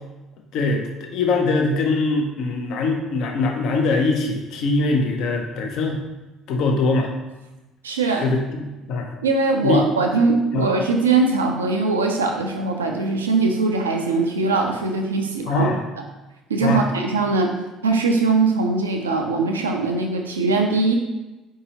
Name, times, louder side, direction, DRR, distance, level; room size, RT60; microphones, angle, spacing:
voice 1, 0.5-6.0 6.5-7.1 8.2-8.6 8.9-9.1 9.6-9.8 10.5-10.7 15.5-15.8 16.6-16.9, left 3 dB, 60° left, 3 dB, 0.6 m, -22 dB
voice 2, 7.8-8.2 9.2-15.7 16.5-17.5 17.8-20.9, right 3 dB, 85° right, 3 dB, 0.4 m, -21 dB
4.6 x 2.7 x 2.8 m, 1.1 s
hypercardioid pair, 55°, 0 cm